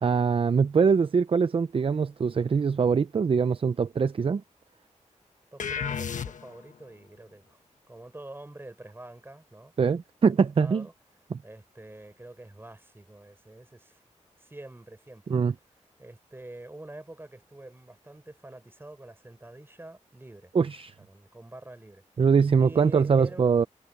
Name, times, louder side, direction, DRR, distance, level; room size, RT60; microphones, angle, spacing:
voice 1, 0.0-4.4 9.8-10.8 11.3-11.4 15.3-15.5 20.5-20.9 22.2-23.7, right 5 dB, 45° right, 0.5 m, -23 dB
voice 2, 5.5-7.6 7.9-9.7 10.2-10.9 11.4-14.0 14.4-15.4 16.0-20.5 21.0-22.0 22.6-23.5, right 2 dB, 15° right, 4.2 m, -46 dB
sound 1, 5.6-6.8, left 7 dB, 75° left, 1.2 m, -32 dB
wide cardioid pair, 110°, 13 cm